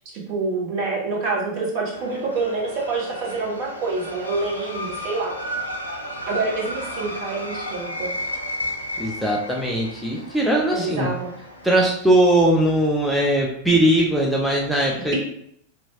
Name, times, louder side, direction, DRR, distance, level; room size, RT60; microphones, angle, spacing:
voice 1, 0.1-5.3 6.3-8.2 10.7-11.3, right 3 dB, 45° right, -3 dB, 1.0 m, -27 dB
sound 1, 1.9-11.9, equal, 85° left, 0.4 m, -33 dB
voice 2, 9.0-11.1 11.6-15.2, right 1 dB, ahead, -3 dB, 0.4 m, -20 dB
2.7 x 2.2 x 2.8 m, 0.69 s
figure-of-eight pair, 90°, 0 cm